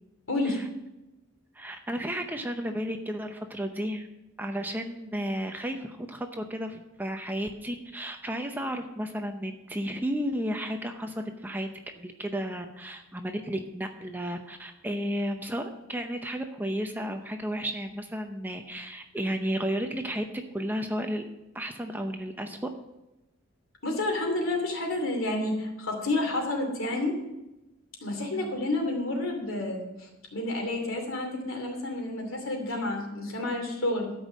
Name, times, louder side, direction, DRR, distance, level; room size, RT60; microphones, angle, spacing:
voice 1, 0.3-0.6 23.8-27.2 28.0-34.1, left 2 dB, 75° left, 2 dB, 2.7 m, -30 dB
voice 2, 1.5-4.1 4.4-11.7 12.0-20.3 20.5-21.2 21.5-22.6 28.3-28.6, equal, 10° right, 5 dB, 0.6 m, -33 dB
13.0 x 5.3 x 7.4 m, 0.97 s
head